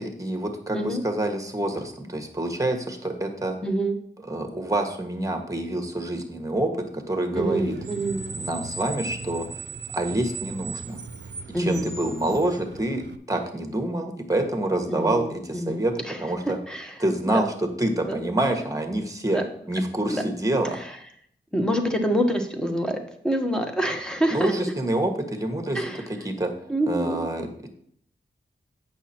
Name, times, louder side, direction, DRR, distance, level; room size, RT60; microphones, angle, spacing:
voice 1, 0.0-3.6 4.3-7.7 8.4-9.5 9.9-11.0 11.6-13.0 13.3-15.9 16.2-16.6 17.0-17.4 17.8-19.4 19.7-20.8 24.3-25.8 26.2-26.5 26.9-27.5, right 1 dB, 15° right, 4 dB, 1.5 m, -27 dB
voice 2, 0.7-1.0 3.6-4.0 7.4-8.3 11.5-12.0 14.9-17.4 18.1-18.2 19.3-19.4 20.1-20.2 20.6-21.0 21.5-23.0 23.2-24.6 25.7-26.1 26.7-27.3, right 1 dB, 5° left, 4 dB, 1.3 m, -27 dB
Screech, 7.3-13.2, right 4 dB, 65° right, 0.6 m, -37 dB
8.2 x 6.2 x 4.4 m, 0.67 s
wide cardioid pair, 70°, 20 cm